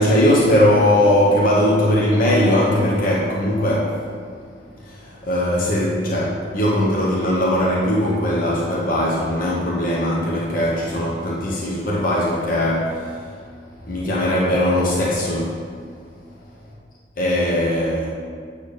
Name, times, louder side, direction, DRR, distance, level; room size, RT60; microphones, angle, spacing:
voice 1, 0.0-4.0 4.9-13.2 13.8-15.6 17.2-18.1, left 1 dB, 50° left, -4 dB, 1.0 m, -19 dB
8.4 x 3.5 x 6.4 m, 2.1 s
head